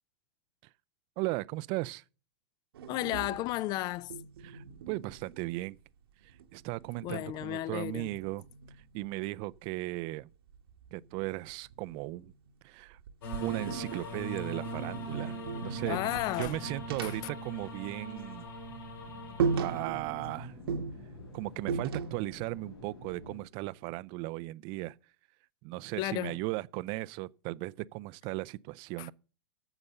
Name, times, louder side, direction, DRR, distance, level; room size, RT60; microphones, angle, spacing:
voice 1, 1.2-2.0 4.4-5.8 6.5-8.4 8.9-10.3 10.9-12.3 12.6-13.0 13.4-16.0 16.4-18.5 19.6-20.6 21.3-24.9 25.6-29.1, right 20 dB, 40° right, 0.4 m, -36 dB
sound 1, 2.7-5.9 6.2-9.1 10.5-12.5 12.9-18.2 18.5-18.7 19.0-19.1 19.4-20.3 20.7-22.4, right 5 dB, 70° right, 1.1 m, -38 dB
voice 2, 2.9-4.1 7.0-8.1 15.9-16.6 17.0-17.2 26.0-26.4 29.0-29.1, left 16 dB, 30° left, 0.4 m, -33 dB
sound 2, 13.2-19.9, equal, 65° left, 5.2 m, -41 dB
sound 3, 15.6-23.4, left 1 dB, 80° left, 4.0 m, -48 dB
9.7 x 7.1 x 6.8 m
hypercardioid pair, 120°, 13 cm